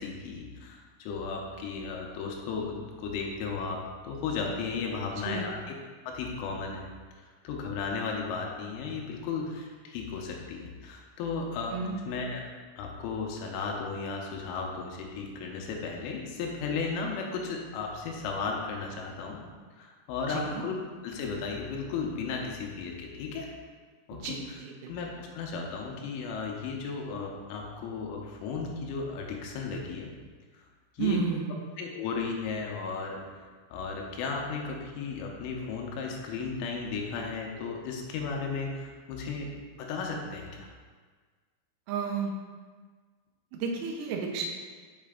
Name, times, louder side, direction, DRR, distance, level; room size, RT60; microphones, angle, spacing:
voice 1, 0.0-5.6 6.1-6.9 7.2-11.8 12.1-12.4 12.8-19.4 19.8-20.8 21.0-23.5 24.1-24.6 24.9-30.1 30.9-31.2 31.8-33.2 33.7-40.7, left 4 dB, 90° left, 0 dB, 3.3 m, -35 dB
voice 2, 5.2-5.5 11.7-12.0 20.3-20.6 24.1-24.9 31.0-31.6 41.9-42.3 43.5-44.6, right 5 dB, 85° right, 1 dB, 2.2 m, -32 dB
7.3 x 5.6 x 3.7 m, 1.5 s
omnidirectional pair, 5.7 m